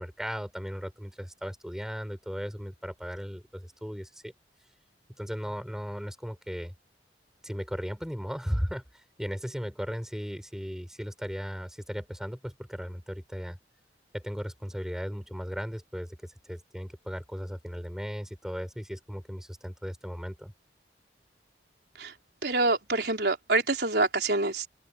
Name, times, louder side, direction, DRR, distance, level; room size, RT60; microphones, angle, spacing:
voice 1, 0.0-4.3 5.2-6.7 7.4-13.6 14.1-20.5, equal, 5° right, 5.3 m, -36 dB
voice 2, 22.4-24.7, right 2 dB, 65° right, 3.9 m, -26 dB
open air
head